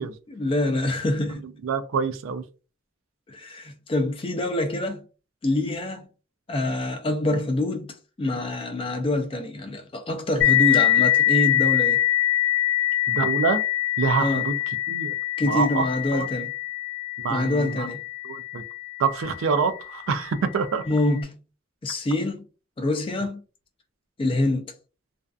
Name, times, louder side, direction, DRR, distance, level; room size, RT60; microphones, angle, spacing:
voice 1, 0.3-1.5 3.3-5.0 5.4-6.1 6.5-12.0 14.2-14.5 15.4-16.5 17.3-18.0 20.9-21.4 21.8-22.4 22.8-23.4 24.2-24.7, left 2 dB, 25° left, 0.4 m, -26 dB
voice 2, 1.6-2.4 13.1-13.6 14.0-14.6 14.9-15.1 15.4-15.8 16.1-16.3 17.2-17.9 18.2-18.6 19.0-20.8, right 5 dB, 90° right, 0.4 m, -26 dB
sound 1, 10.4-19.6, left 12 dB, 75° left, 0.6 m, -24 dB
2.5 x 2.2 x 2.3 m
head